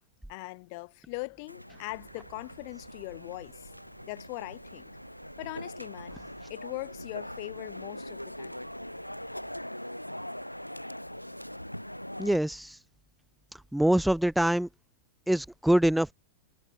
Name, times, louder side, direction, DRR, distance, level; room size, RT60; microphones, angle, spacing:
voice 1, 0.3-3.6 4.0-4.9 5.4-6.2 6.5-8.7, left 30 dB, 45° left, 1.5 m, -40 dB
sound 1, 1.5-12.4, equal, 90° left, 1.6 m, -42 dB
sound 2, 1.9-9.6, right 20 dB, 50° right, 7.5 m, -59 dB
voice 2, 12.2-12.8 13.7-14.7 15.3-16.1, right 1 dB, ahead, 0.7 m, -24 dB
figure-of-eight pair, 90°, 0 cm